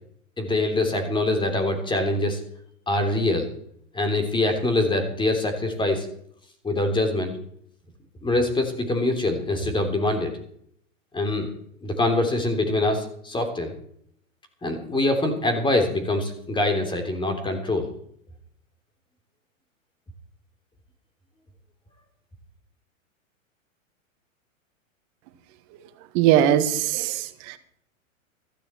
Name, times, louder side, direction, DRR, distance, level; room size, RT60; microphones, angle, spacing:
voice 1, 0.4-2.4 2.9-3.5 3.9-6.1 6.6-7.3 8.2-10.3 11.1-11.5 11.8-13.7 14.6-17.9, left 2 dB, 10° left, 6 dB, 3.2 m, -24 dB
voice 2, 26.1-27.6, right 11 dB, 40° right, 10 dB, 1.8 m, -21 dB
15.0 x 14.0 x 4.5 m, 0.68 s
hypercardioid pair, 130°, 41 cm